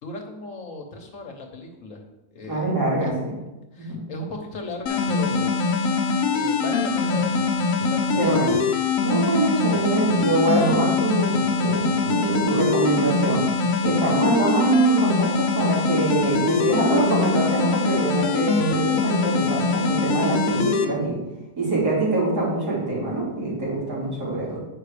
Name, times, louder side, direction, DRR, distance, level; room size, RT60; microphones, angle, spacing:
voice 1, 0.0-3.1 3.7-5.6 5.8-6.0 6.3-8.6, left 2 dB, 55° left, 3 dB, 1.3 m, -36 dB
voice 2, 2.5-3.1 3.8-4.0 8.2-8.6 9.0-13.4 13.8-21.2 21.6-24.6, right 2 dB, 80° right, -7 dB, 4.1 m, -24 dB
sound 1, 4.9-20.9, left 4 dB, 70° left, 1.3 m, -23 dB
8.6 x 5.7 x 4.9 m, 1.0 s
omnidirectional pair, 1.7 m